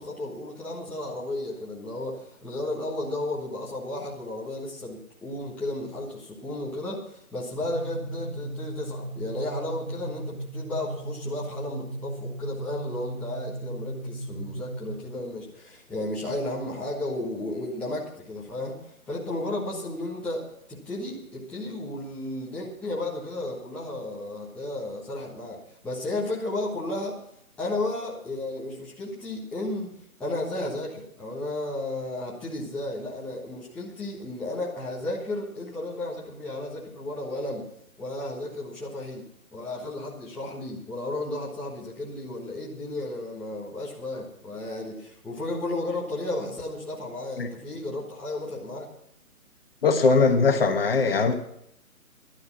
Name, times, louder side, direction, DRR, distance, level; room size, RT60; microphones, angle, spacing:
voice 1, 0.0-27.2 27.6-37.7 38.0-48.9, left 2 dB, 5° left, -7 dB, 1.2 m, -33 dB
sound 1, 7.6-15.2, right 1 dB, 35° right, 2.2 m, -36 dB
voice 2, 49.8-51.3, left 4 dB, 40° left, 6 dB, 1.4 m, -20 dB
13.0 x 11.5 x 6.0 m, 0.76 s
figure-of-eight pair, 150°, 44 cm